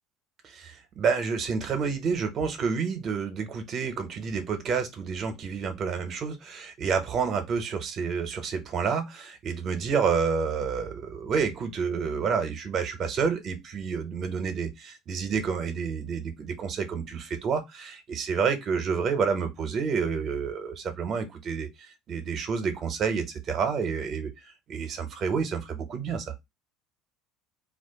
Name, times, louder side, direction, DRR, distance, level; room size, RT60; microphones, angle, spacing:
voice 1, 0.4-26.3, right 6 dB, 50° right, 0.9 m, -29 dB
2.5 x 2.4 x 3.5 m
hypercardioid pair, 75°, 0 cm